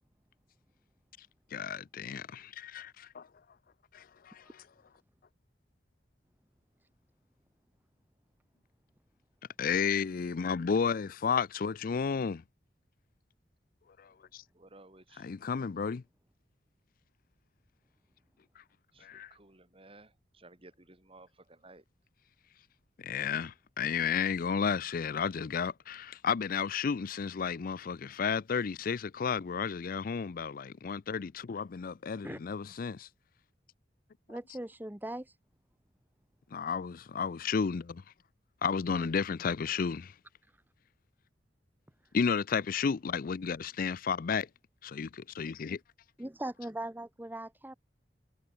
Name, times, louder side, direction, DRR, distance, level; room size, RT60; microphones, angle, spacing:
voice 1, 1.5-3.3 3.9-4.6 9.6-12.4 14.0-14.4 15.2-16.0 19.0-19.3 23.0-33.1 34.3-34.4 36.5-38.0 38.6-40.1 42.1-44.5 44.8-45.8, left 6 dB, 50° left, 0.4 m, -32 dB
voice 2, 14.5-15.3 18.9-21.8, right 2 dB, 30° right, 3.5 m, -56 dB
voice 3, 34.3-35.4 38.9-39.1 46.2-47.8, right 1 dB, 10° right, 1.0 m, -40 dB
head